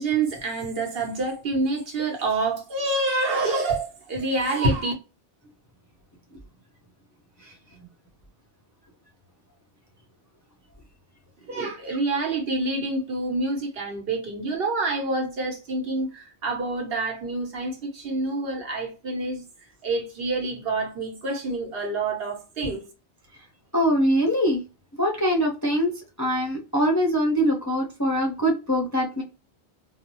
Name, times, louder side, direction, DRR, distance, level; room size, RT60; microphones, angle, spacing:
voice 1, 0.0-4.9 11.5-19.4 19.8-22.8, right 2 dB, 65° right, 1.1 m, -27 dB
voice 2, 23.7-24.6 25.0-25.9 26.2-29.2, equal, 25° left, 0.4 m, -23 dB
2.6 x 2.0 x 2.9 m
omnidirectional pair, 1.1 m